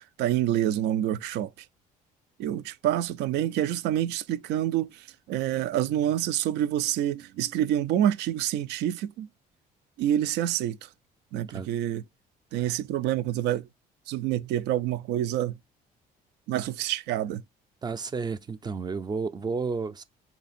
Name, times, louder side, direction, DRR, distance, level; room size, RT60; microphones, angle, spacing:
voice 1, 0.2-1.5 2.4-9.3 10.0-10.8 11.3-12.0 12.5-13.7 14.1-15.6 16.5-17.4, right 12 dB, 80° right, 0.4 m, -27 dB
voice 2, 17.8-20.0, right 4 dB, 25° right, 0.4 m, -31 dB
3.4 x 2.8 x 4.1 m
cardioid pair, 110°, 17 cm